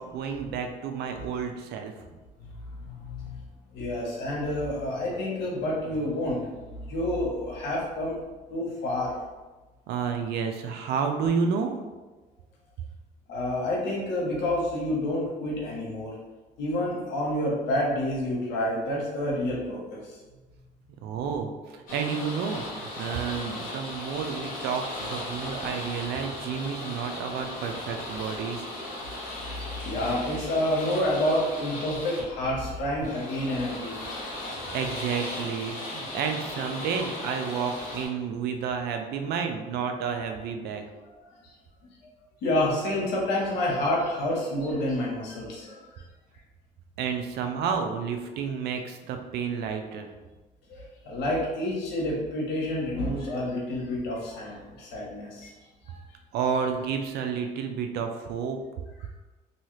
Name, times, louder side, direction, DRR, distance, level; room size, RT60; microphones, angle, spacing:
voice 1, 0.0-1.9 9.9-11.7 21.0-28.7 34.7-40.9 47.0-50.1 56.3-58.6, right 6 dB, 75° right, 5 dB, 0.4 m, -30 dB
voice 2, 2.6-3.4 3.7-8.2 8.5-9.1 13.3-16.1 16.6-20.2 29.3-34.0 34.5-34.8 35.7-35.8 36.9-37.0 41.0-41.1 42.4-45.9 50.7-55.5 55.9-56.0, left 1 dB, 85° left, -4 dB, 1.0 m, -29 dB
sound 1, 21.9-38.1, left 1 dB, 55° left, 1.1 m, -37 dB
2.8 x 2.3 x 3.1 m, 1.2 s
cardioid pair, 110°, 17 cm